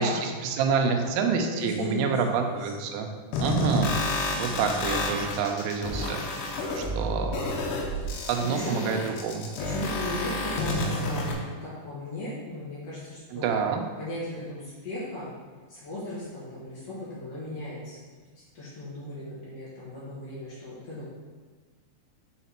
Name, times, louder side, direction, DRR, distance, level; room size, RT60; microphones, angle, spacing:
voice 1, 0.0-3.1 3.4-4.0 4.4-6.2 6.5-7.4 8.3-9.5 13.3-13.8, right 5 dB, 80° right, 3 dB, 2.6 m, -27 dB
voice 2, 1.0-2.9 8.4-9.0 9.6-13.5 14.0-15.3 15.7-18.0 18.5-21.1, left 1 dB, 60° left, -8 dB, 1.7 m, -36 dB
sound 1, 3.3-11.3, left 1 dB, 90° left, 3.0 m, -30 dB
6.5 x 4.0 x 4.4 m, 1.4 s
omnidirectional pair, 4.9 m